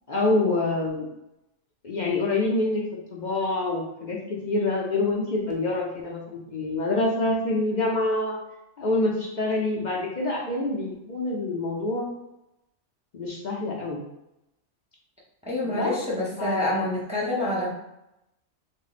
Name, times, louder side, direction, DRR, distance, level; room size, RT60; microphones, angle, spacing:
voice 1, 0.1-1.1 1.8-2.8 3.1-8.4 8.8-12.1 13.1-14.0 15.6-15.9 16.4-16.9, left 2 dB, 50° left, -3 dB, 0.6 m, -26 dB
voice 2, 15.5-17.7, left 1 dB, 5° right, -6 dB, 0.7 m, -27 dB
3.7 x 2.0 x 4.0 m, 0.87 s
omnidirectional pair, 1.3 m